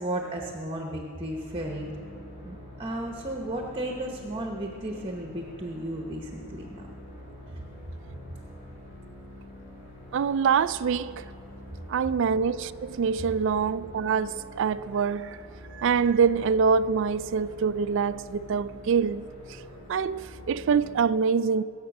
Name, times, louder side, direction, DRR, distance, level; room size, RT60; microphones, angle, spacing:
voice 1, 0.0-1.9 2.4-6.9 8.0-8.2, right 1 dB, 25° right, 0.9 m, -34 dB
sound 1, 1.2-20.9, left 1 dB, 35° left, 3.1 m, -46 dB
voice 2, 10.1-11.3 11.9-15.4 15.8-19.2 19.9-21.6, right 6 dB, 60° right, 0.3 m, -25 dB
22.0 x 7.4 x 6.0 m
head